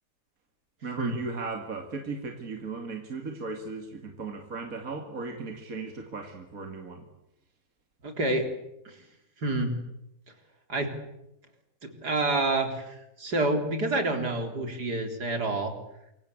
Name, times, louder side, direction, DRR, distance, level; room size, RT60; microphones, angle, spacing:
voice 1, 0.8-7.1, right 4 dB, 55° right, 4 dB, 2.8 m, -36 dB
voice 2, 8.0-8.5 9.4-9.8 10.7-10.9 11.8-15.7, right 2 dB, 70° right, 5 dB, 4.4 m, -28 dB
27.0 x 23.5 x 8.7 m, 0.87 s
omnidirectional pair, 1.8 m